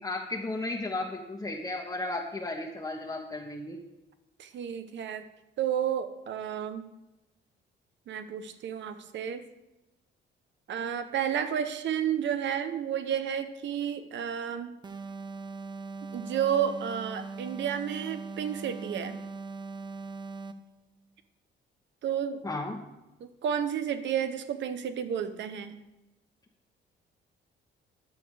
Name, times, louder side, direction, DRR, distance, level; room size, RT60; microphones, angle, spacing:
voice 1, 0.0-3.8 22.4-22.9, left 2 dB, 20° left, -2 dB, 1.1 m, -34 dB
voice 2, 4.4-5.2 5.6-6.8 8.1-9.4 10.7-14.8 16.1-19.2 22.0-22.4 23.2-25.8, right 9 dB, 65° right, 10 dB, 0.9 m, -31 dB
sound 1, 14.8-20.7, right 4 dB, 20° right, 0.6 m, -40 dB
11.0 x 6.9 x 4.9 m, 0.97 s
cardioid pair, 90°, 20 cm